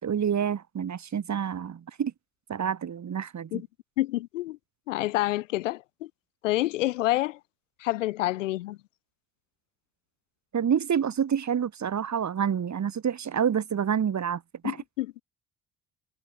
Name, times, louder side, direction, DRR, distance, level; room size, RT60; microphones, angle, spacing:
voice 1, 0.0-2.1 2.5-3.6 10.5-14.8, right 8 dB, 50° right, 5.1 m, -28 dB
voice 2, 4.0-4.6 4.9-6.1 6.4-7.4 7.8-8.8 14.6-15.1, left 17 dB, 90° left, 5.1 m, -28 dB
hypercardioid pair, 55°, 36 cm